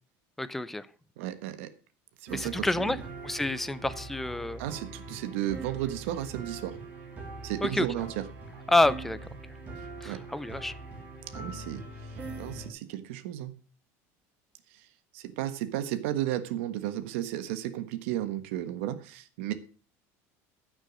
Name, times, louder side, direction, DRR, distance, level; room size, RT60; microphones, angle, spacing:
voice 1, 0.4-0.9 2.3-3.0 3.2-4.6 7.6-7.9 8.7-9.2 10.0-10.8, left 2 dB, 5° left, 0.5 m, -28 dB
voice 2, 1.2-1.7 2.2-2.9 4.6-6.8 7.4-8.2 10.0-10.2 11.3-11.8 12.4-13.5 14.7-14.8 15.1-19.5, right 13 dB, 80° right, 1.4 m, -33 dB
sound 1, 2.3-12.7, right 3 dB, 25° right, 3.1 m, -42 dB
14.5 x 6.4 x 6.3 m
cardioid pair, 180°, 7 cm